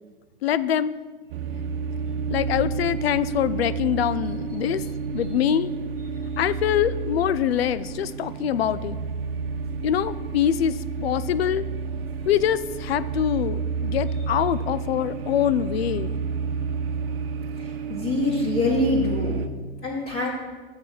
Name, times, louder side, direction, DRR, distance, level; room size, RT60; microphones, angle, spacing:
voice 1, 0.4-0.9 2.3-4.8 5.1-5.7 6.4-9.0 9.8-11.7 12.3-16.1, left 10 dB, 80° left, 17 dB, 0.5 m, -24 dB
sound 1, 1.3-19.5, right 5 dB, 65° right, 0.6 m, -30 dB
voice 2, 17.9-19.4 19.8-20.3, left 2 dB, 30° left, -6 dB, 1.9 m, -24 dB
6.8 x 6.6 x 5.8 m, 1.4 s
hypercardioid pair, 95°, 31 cm